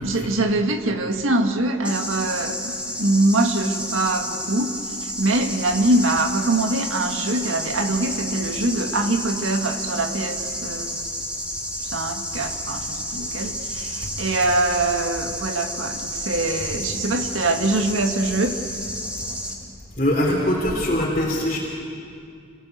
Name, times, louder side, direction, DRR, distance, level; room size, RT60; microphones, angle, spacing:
voice 1, 0.0-4.7 5.2-11.1 11.9-13.9 14.2-18.6, right 2 dB, 85° right, 5 dB, 1.8 m, -23 dB
sound 1, 1.8-19.5, equal, 5° right, 2.5 m, -31 dB
voice 2, 20.0-21.6, left 1 dB, 40° left, -5 dB, 3.6 m, -22 dB
27.0 x 19.5 x 8.0 m, 2.5 s
head